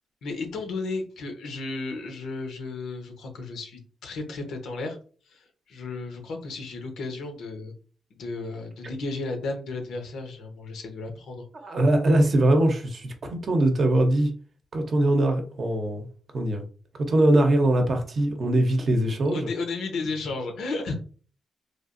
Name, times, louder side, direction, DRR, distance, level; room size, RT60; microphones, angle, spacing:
voice 1, 0.2-5.0 5.3-7.7 8.2-11.4 19.3-20.9, left 3 dB, 85° left, 0.8 m, -33 dB
voice 2, 11.6-14.3 14.7-16.1 16.3-16.6 17.0-19.5, right 1 dB, 45° right, 0.7 m, -22 dB
3.3 x 2.4 x 2.5 m
cardioid pair, 115°, 0 cm